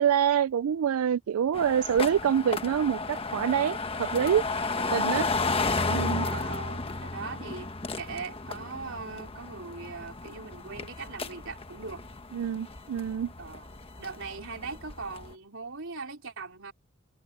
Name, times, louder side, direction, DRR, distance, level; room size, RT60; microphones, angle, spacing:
voice 1, 0.0-4.5 4.9-5.3 5.9-6.3 12.3-13.3, right 8 dB, 85° right, 0.4 m, -26 dB
sound 1, 1.5-15.3, left 3 dB, 25° left, 1.2 m, -33 dB
voice 2, 6.2-12.0 13.4-13.7 14.0-16.7, right 4 dB, 65° right, 4.2 m, -40 dB
head